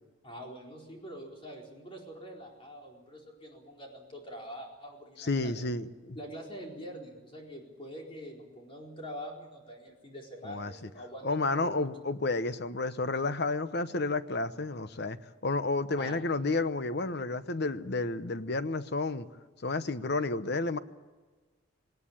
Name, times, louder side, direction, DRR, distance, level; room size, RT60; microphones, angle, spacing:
voice 1, 0.2-5.5 6.1-11.8 16.0-16.2 16.4-16.5, equal, 25° left, 0 dB, 4.4 m, -45 dB
voice 2, 5.2-6.2 10.4-10.7 11.2-15.2 15.4-19.3 19.6-20.8, left 3 dB, 55° left, 12 dB, 0.9 m, -31 dB
19.0 x 19.0 x 8.8 m, 1.3 s
head